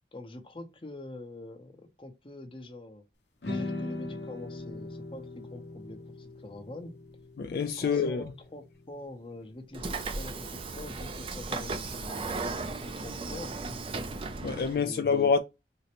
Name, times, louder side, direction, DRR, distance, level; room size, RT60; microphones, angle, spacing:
voice 1, 0.1-3.0 3.4-7.0 7.8-13.6 14.8-15.1, left 2 dB, 30° left, 0.7 m, -45 dB
sound 1, 3.4-9.7, left 2 dB, 80° left, 0.7 m, -40 dB
voice 2, 7.4-8.2 14.4-15.4, left 5 dB, 55° left, 0.3 m, -26 dB
Train / Sliding door, 9.7-14.8, right 3 dB, 30° right, 0.4 m, -36 dB
3.8 x 2.1 x 2.8 m
head